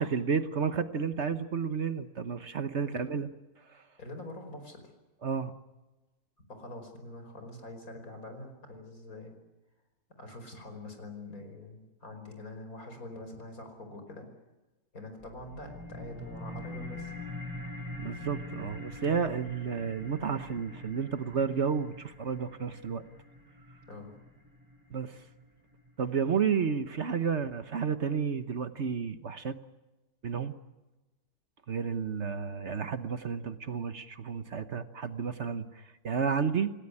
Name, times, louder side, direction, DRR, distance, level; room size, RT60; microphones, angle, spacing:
voice 1, 0.0-3.3 5.2-5.5 18.0-23.0 24.9-25.2 26.0-29.6 30.2-30.5 31.7-36.7, right 6 dB, 50° right, 10 dB, 1.3 m, -31 dB
voice 2, 4.0-4.8 6.5-9.3 10.2-14.3 14.9-17.1 23.9-24.1, left 1 dB, 70° left, 6 dB, 5.5 m, -44 dB
sound 1, 15.2-26.2, left 1 dB, 15° right, 4.1 m, -44 dB
28.5 x 17.5 x 10.0 m, 1.1 s
omnidirectional pair, 1.6 m